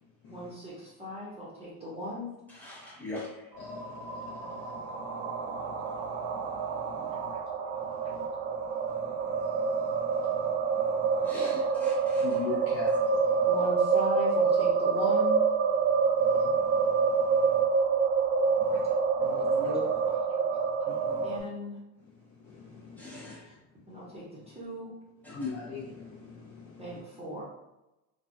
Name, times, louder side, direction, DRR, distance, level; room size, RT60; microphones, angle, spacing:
voice 1, 0.3-2.3 7.3-7.4 11.2-11.6 13.5-15.4 18.7-18.8 20.1-20.9 21.2-21.8 23.4-23.5 23.9-24.9 26.8-27.4, left 1 dB, 15° right, -7 dB, 0.6 m, -39 dB
voice 2, 2.5-3.5 6.9-7.1 11.2-12.3 23.0-23.4 25.2-25.5, left 1 dB, 5° left, -7 dB, 1.0 m, -42 dB
voice 3, 3.6-7.3 7.8-8.3 8.7-11.4 12.2-13.5 16.2-17.6 18.6-18.9 19.2-20.2 20.9-21.4 22.4-23.4 25.3-27.0, left 5 dB, 35° left, -4 dB, 0.5 m, -43 dB
sound 1, 3.6-21.4, right 5 dB, 65° right, 0.5 m, -27 dB
3.4 x 2.0 x 2.5 m, 0.97 s
cardioid pair, 130°, 41 cm